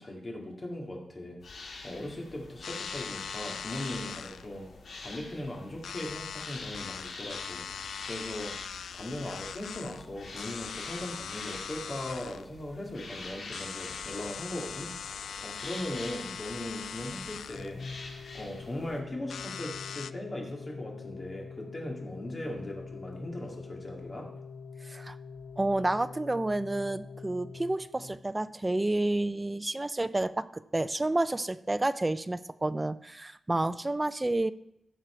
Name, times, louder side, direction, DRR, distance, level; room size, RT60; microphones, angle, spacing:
voice 1, 0.0-4.7 5.0-7.7 8.1-14.9 15.4-17.8 18.3-24.3, left 1 dB, 25° left, 0 dB, 2.1 m, -39 dB
sound 1, 1.4-19.0, left 3 dB, 60° left, 1.9 m, -46 dB
sound 2, 2.6-20.1, left 7 dB, 85° left, 0.3 m, -41 dB
Organ, 17.5-28.4, left 4 dB, 40° left, 0.8 m, -45 dB
voice 2, 24.8-25.2 25.6-34.5, right 2 dB, 15° right, 13 dB, 0.4 m, -30 dB
15.5 x 6.1 x 4.4 m, 0.80 s
wide cardioid pair, 155°, 0 cm